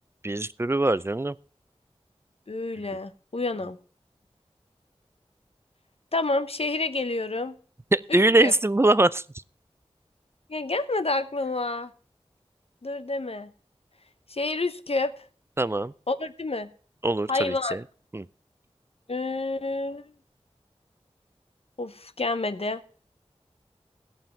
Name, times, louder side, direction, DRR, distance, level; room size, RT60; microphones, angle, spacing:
voice 1, 0.2-1.4 7.9-9.2 15.6-15.9 17.0-17.8 18.1-18.3, right 2 dB, 20° right, 0.4 m, -22 dB
voice 2, 2.5-3.8 6.1-7.6 8.1-8.5 10.5-11.9 12.8-13.5 14.3-15.1 16.1-16.7 17.3-17.8 19.1-20.0 21.8-22.8, left 2 dB, 60° left, 0.9 m, -29 dB
16.5 x 5.6 x 5.9 m
wide cardioid pair, 50°, 11 cm